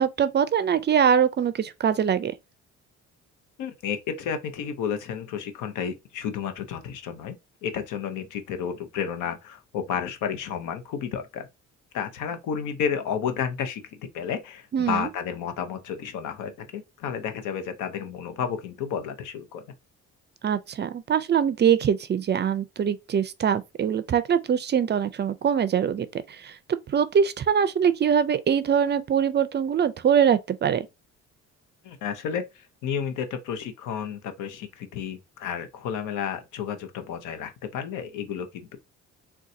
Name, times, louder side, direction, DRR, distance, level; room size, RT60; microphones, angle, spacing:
voice 1, 0.0-2.3 14.7-15.1 20.4-26.5 26.9-30.9, right 8 dB, 35° right, 0.4 m, -23 dB
voice 2, 3.6-7.3 7.6-11.5 11.9-13.8 14.1-19.6 31.8-38.8, left 7 dB, 90° left, 0.7 m, -31 dB
3.9 x 2.3 x 2.5 m
cardioid pair, 90°, 30 cm